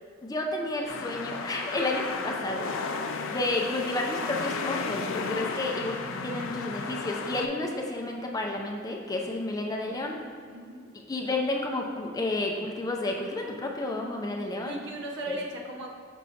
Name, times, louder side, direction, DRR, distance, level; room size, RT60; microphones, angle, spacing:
voice 1, 0.2-3.0 3.3-10.2 11.1-14.8 15.3-15.4, left 2 dB, 20° left, 0 dB, 0.5 m, -31 dB
sound 1, 0.9-7.5, left 4 dB, 85° left, 0.4 m, -34 dB
voice 2, 10.5-10.9 14.6-15.9, right 1 dB, 65° right, 0 dB, 0.8 m, -38 dB
6.1 x 2.8 x 5.6 m, 2.1 s
head